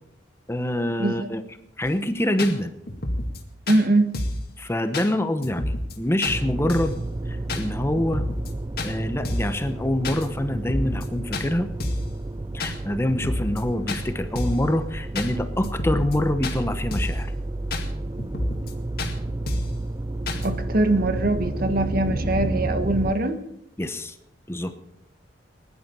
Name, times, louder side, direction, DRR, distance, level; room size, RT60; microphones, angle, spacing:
voice 1, 0.5-1.4 1.8-2.7 4.6-7.0 7.3-8.2 8.8-11.7 12.5-17.3 23.8-24.2 24.5-24.7, left 1 dB, 15° left, 9 dB, 0.9 m, -25 dB
sound 1, 1.8-1.9 2.4-2.5 2.9-3.4 3.7-3.8 4.1-4.5 4.9-5.1 5.4-6.0 6.2-6.4 6.7-7.0 7.5-7.6 8.0-8.5 8.8-8.9 9.3-9.6 10.0-10.3 10.5-11.1 11.3-11.5 11.8-12.1 12.6-12.8 13.1-13.6 13.9-14.0 14.4-14.7 15.2-15.3 15.6-16.2 16.4-16.6 16.9-17.2 17.7-17.9 18.2-18.7 19.0-19.1 19.5-19.8 20.3-20.5, left 1 dB, 55° left, 2.2 m, -29 dB
voice 2, 3.7-4.2 20.4-23.4, right 2 dB, 55° right, 8 dB, 1.4 m, -22 dB
sound 2, 6.3-23.1, right 2 dB, 20° right, 0.5 m, -31 dB
20.5 x 11.0 x 5.4 m, 0.80 s
head